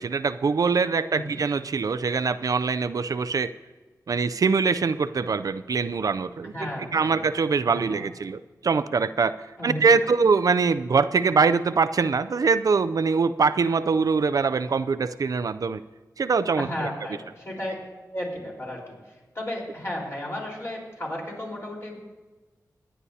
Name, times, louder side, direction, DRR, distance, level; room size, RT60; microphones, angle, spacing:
voice 1, 0.0-3.5 4.1-9.4 9.6-15.8 16.2-16.9, right 5 dB, 60° right, 13 dB, 0.4 m, -23 dB
voice 2, 1.1-1.4 6.4-7.2 7.6-8.0 9.6-10.1 16.6-17.7 18.1-22.0, left 1 dB, 40° left, -3 dB, 4.1 m, -34 dB
23.5 x 9.7 x 2.8 m, 1.3 s
wide cardioid pair, 85°, 7 cm